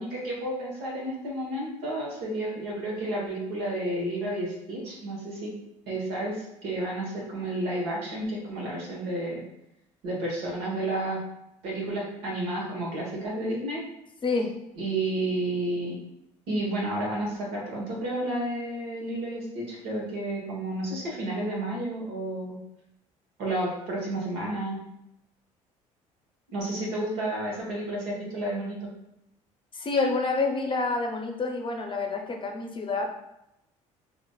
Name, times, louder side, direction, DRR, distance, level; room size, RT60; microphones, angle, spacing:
voice 1, 0.0-5.5 5.9-9.4 10.0-11.2 11.6-13.8 14.8-15.9 16.5-22.6 23.4-24.8 26.5-28.8, right 1 dB, 75° right, -3 dB, 1.2 m, -31 dB
voice 2, 29.7-33.1, left 3 dB, 30° left, 2 dB, 0.6 m, -28 dB
3.7 x 2.4 x 2.3 m, 0.84 s
hypercardioid pair, 65°, 16 cm